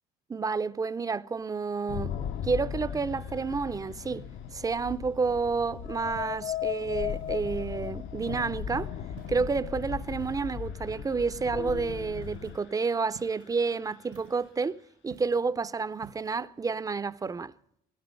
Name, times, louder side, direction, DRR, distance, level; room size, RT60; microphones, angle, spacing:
voice 1, 0.3-4.3 4.5-8.9 9.3-17.5, right 4 dB, 15° right, 0.5 m, -30 dB
sound 1, 1.7-15.7, left 6 dB, 80° left, 6.1 m, -63 dB
sound 2, 1.9-12.6, left 9 dB, 55° left, 0.7 m, -36 dB
sound 3, 6.1-6.5 7.1-7.7 8.2-8.6 9.2-9.6 10.2-10.7 12.2-12.6 13.1-13.6 14.1-14.6 15.1-15.5 16.0-16.4, right 11 dB, 70° right, 1.0 m, -52 dB
19.5 x 14.0 x 5.2 m
cardioid pair, 120°, 21 cm